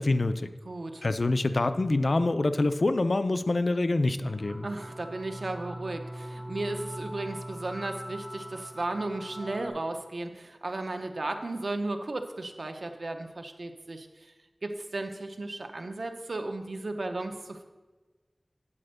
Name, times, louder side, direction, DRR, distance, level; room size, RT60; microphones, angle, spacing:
voice 1, 0.0-0.5 1.0-4.7, left 2 dB, 75° left, 10 dB, 0.4 m, -26 dB
voice 2, 0.6-1.0 4.6-14.3 14.6-17.6, right 2 dB, 85° right, 5 dB, 0.8 m, -35 dB
sound 1, 4.2-9.7, equal, 35° left, 1.8 m, -41 dB
9.8 x 4.3 x 6.5 m, 1.3 s
wide cardioid pair, 55°, 0 cm